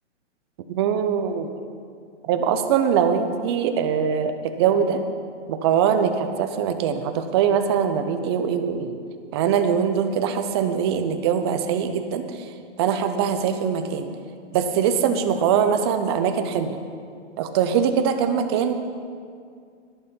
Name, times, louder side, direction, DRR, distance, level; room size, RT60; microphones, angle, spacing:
voice 1, 0.7-1.5 2.3-5.0 5.5-8.9 9.3-12.2 12.8-14.1 14.5-16.8 17.4-18.7, right 7 dB, 20° right, 7 dB, 0.6 m, -22 dB
11.0 x 11.0 x 5.2 m, 2.3 s
hypercardioid pair, 150°, 36 cm